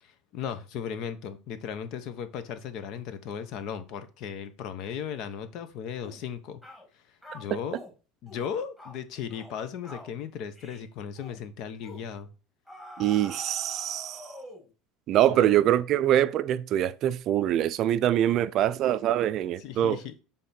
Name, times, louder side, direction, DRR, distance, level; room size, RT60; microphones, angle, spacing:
voice 1, 0.0-6.6 7.3-7.8 8.2-12.3 15.3-15.5 19.6-20.1, left 8 dB, 55° left, 1.0 m, -36 dB
sound 1, 6.0-6.2 6.6-6.9 7.2-7.9 8.3-8.5 8.8-9.0 9.3-9.6 9.8-10.1 10.6-10.9 11.2-11.4 11.8-12.1 12.7-14.7, left 1 dB, 5° left, 2.2 m, -46 dB
voice 2, 13.0-14.3 15.1-20.0, right 12 dB, 45° right, 0.4 m, -24 dB
7.5 x 3.6 x 4.3 m
supercardioid pair, 130°, 0 cm